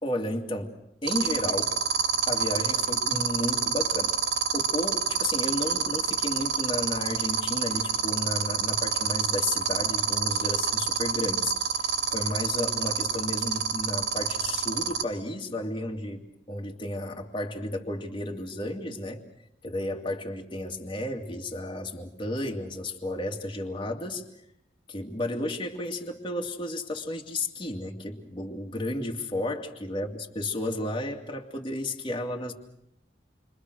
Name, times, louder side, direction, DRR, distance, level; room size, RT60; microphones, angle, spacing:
voice 1, 0.0-0.7 1.0-1.7 2.3-4.1 4.5-19.2 19.6-24.2 24.9-32.5, left 1 dB, 30° left, 1 dB, 2.5 m, -33 dB
sound 1, 1.1-15.0, right 8 dB, 75° right, 3.2 m, -26 dB
29.5 x 24.0 x 6.4 m, 0.76 s
head